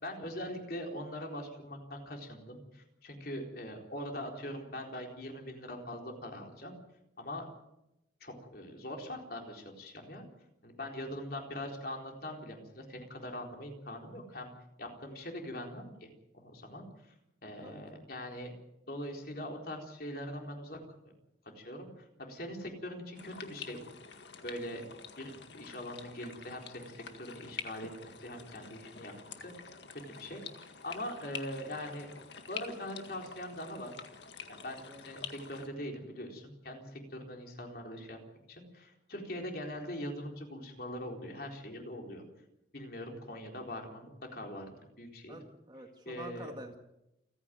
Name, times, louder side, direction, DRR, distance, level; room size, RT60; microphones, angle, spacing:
voice 1, 0.0-6.8 7.2-7.5 8.2-10.2 10.6-14.5 14.8-16.1 16.3-16.8 17.4-18.5 18.9-20.8 21.6-23.8 24.4-29.5 30.0-30.4 30.8-32.1 32.5-33.9 34.5-38.2 38.5-42.2 42.7-44.7 45.0-45.4 46.1-46.5, left 1 dB, 50° left, 2 dB, 4.1 m, -42 dB
voice 2, 17.6-18.0 34.9-35.0 45.3-46.8, right 1 dB, 25° right, 4 dB, 2.0 m, -48 dB
sound 1, 23.1-35.7, left 6 dB, 70° left, 1.9 m, -47 dB
29.0 x 9.9 x 9.4 m, 0.88 s
head